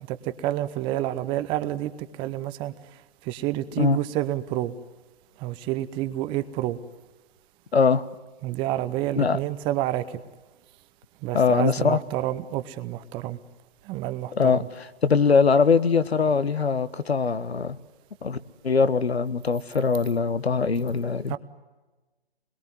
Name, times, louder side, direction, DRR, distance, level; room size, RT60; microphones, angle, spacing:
voice 1, 0.1-2.7 3.2-4.7 5.4-6.8 8.4-10.2 11.2-13.4 13.8-14.7 21.3-21.4, right 14 dB, 15° right, 12 dB, 0.8 m, -29 dB
voice 2, 7.7-8.0 9.2-9.4 11.3-12.0 14.4-14.6 15.0-17.8 18.2-18.4 18.6-21.4, left 5 dB, 85° left, 14 dB, 1.5 m, -21 dB
26.5 x 22.0 x 9.4 m, 1.2 s
hypercardioid pair, 145°, 31 cm